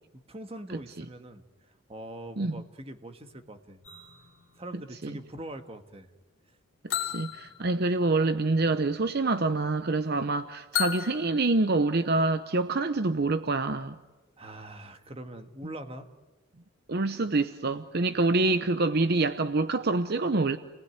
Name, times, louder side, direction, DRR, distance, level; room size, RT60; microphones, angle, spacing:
voice 1, 0.1-1.4 1.9-3.9 4.6-6.1 14.4-16.1 17.9-18.1, right 1 dB, 30° right, 1.7 m, -43 dB
sound 1, 3.8-5.8 6.9-8.6 10.7-12.2, left 10 dB, 75° left, 2.8 m, -36 dB
voice 2, 7.0-14.0 16.9-20.6, right 3 dB, 55° right, 0.8 m, -26 dB
29.5 x 19.5 x 9.6 m
head